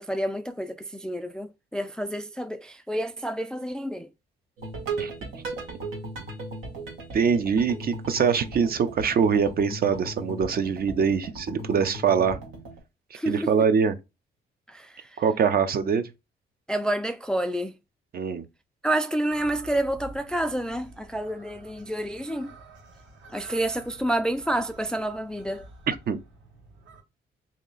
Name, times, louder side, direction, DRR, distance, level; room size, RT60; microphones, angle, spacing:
voice 1, 0.0-4.1 13.1-13.7 14.7-15.1 16.7-17.7 18.8-22.5 23.3-25.7, right 1 dB, 5° left, 0.3 m, -29 dB
sound 1, 4.6-12.8, right 2 dB, 90° right, 1.3 m, -37 dB
voice 2, 7.1-12.4 13.3-14.0 15.2-16.1 18.1-18.4 25.9-26.2, right 6 dB, 50° right, 0.6 m, -23 dB
sound 2, 19.3-27.0, right 2 dB, 70° right, 1.2 m, -49 dB
3.1 x 2.8 x 3.8 m
cardioid pair, 90°, 20 cm